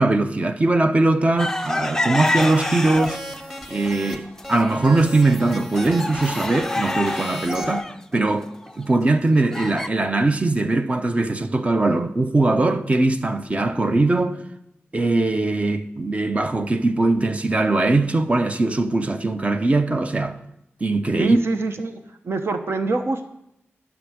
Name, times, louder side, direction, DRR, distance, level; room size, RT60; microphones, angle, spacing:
voice 1, 0.0-3.2 3.7-7.9 8.1-8.5 8.8-14.4 14.9-20.4 20.8-21.4, right 2 dB, 30° right, 0.8 m, -21 dB
sound 1, 1.4-3.4 3.8-4.4 4.8-4.9 5.3-9.9, left 2 dB, 10° left, 0.5 m, -27 dB
sound 2, 2.2-4.2 4.4-7.8, equal, 5° right, 1.8 m, -36 dB
voice 2, 21.2-23.3, right 3 dB, 60° right, 1.0 m, -25 dB
12.0 x 6.1 x 7.9 m
wide cardioid pair, 105°, 5 cm